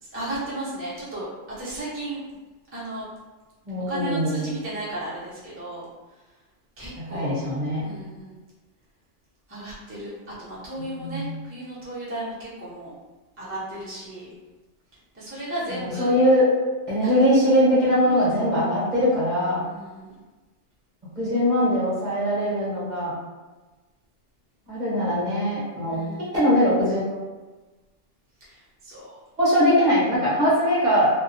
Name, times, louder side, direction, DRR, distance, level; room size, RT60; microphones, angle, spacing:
voice 1, 0.0-1.3 1.6-2.2 2.7-3.1 3.9-5.9 6.8-7.4 7.8-8.4 9.5-10.1 10.4-12.9 13.4-14.3 15.1-16.2 17.0-17.1 17.8-18.0 19.6-20.2 25.9-26.4 28.4-29.2, right 2 dB, 15° right, -9 dB, 0.6 m, -34 dB
voice 2, 3.7-4.6 7.1-7.8 10.8-11.2 15.7-16.4 16.9-19.6 21.2-23.1 24.7-26.0 26.3-27.0 29.4-31.1, equal, 40° right, -8 dB, 0.9 m, -21 dB
2.6 x 2.2 x 2.5 m, 1.2 s
omnidirectional pair, 1.3 m